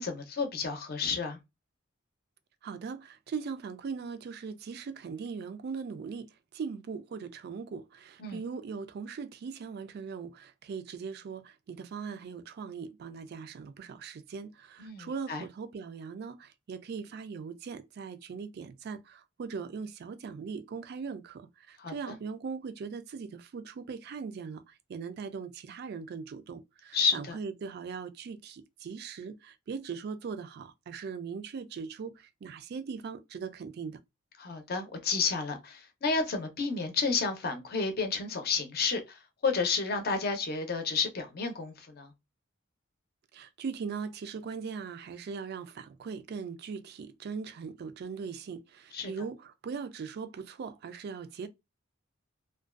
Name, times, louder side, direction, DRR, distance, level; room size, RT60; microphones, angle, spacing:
voice 1, 0.0-1.4 8.2-8.4 14.8-15.4 21.8-22.2 26.9-27.4 34.4-42.1 48.9-49.1, left 4 dB, 50° left, 0.6 m, -31 dB
voice 2, 2.6-34.0 43.3-51.5, right 5 dB, 50° right, 0.3 m, -40 dB
2.4 x 2.2 x 2.3 m
head